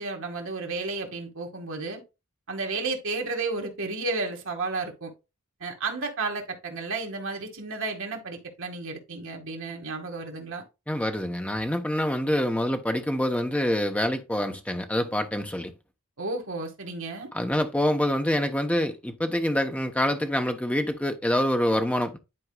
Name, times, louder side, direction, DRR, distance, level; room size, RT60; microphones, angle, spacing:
voice 1, 0.0-2.0 2.5-5.1 5.6-10.6 16.2-17.3, right 3 dB, 65° right, 2.0 m, -32 dB
voice 2, 10.9-15.7 17.3-22.2, left 1 dB, 5° left, 0.8 m, -26 dB
11.0 x 4.5 x 2.3 m
head